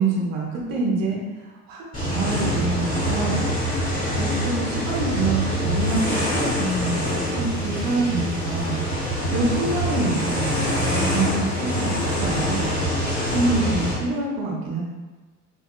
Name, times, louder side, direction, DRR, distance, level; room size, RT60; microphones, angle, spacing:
voice 1, 0.0-8.7 9.3-10.5 10.8-12.8 13.3-14.8, right 3 dB, 45° right, -3 dB, 0.9 m, -26 dB
sound 1, 1.9-13.9, equal, 20° left, 1.5 m, -25 dB
3.0 x 2.7 x 2.3 m, 1.2 s
figure-of-eight pair, 70°, 47 cm